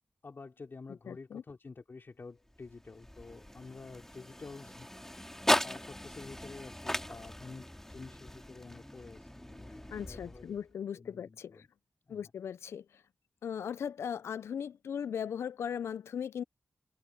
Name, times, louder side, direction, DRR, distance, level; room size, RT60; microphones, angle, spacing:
voice 1, 0.2-10.6 10.9-11.7 12.0-12.3, left 4 dB, 55° left, 3.1 m, -50 dB
voice 2, 1.1-1.4 9.9-11.6 12.1-13.0 13.4-16.4, left 8 dB, 85° left, 0.3 m, -38 dB
sound 1, 2.5-10.7, left 1 dB, 10° left, 3.3 m, -38 dB
cardioid pair, 45°, 4 cm